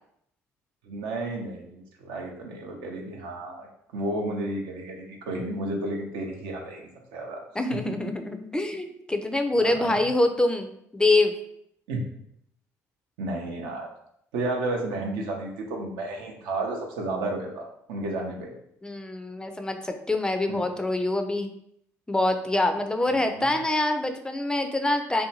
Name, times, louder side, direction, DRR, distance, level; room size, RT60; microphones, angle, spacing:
voice 1, 0.8-3.7 3.9-6.8 7.1-7.4 7.9-8.0 9.6-10.0 11.9-12.0 13.2-13.9 14.3-18.5 20.5-20.6 23.4-23.5, right 2 dB, 75° right, 1 dB, 0.5 m, -32 dB
voice 2, 7.6-11.3 18.8-21.5 22.1-25.3, left 2 dB, 10° left, 6 dB, 0.3 m, -25 dB
2.6 x 2.2 x 2.8 m, 0.73 s
hypercardioid pair, 65°, 8 cm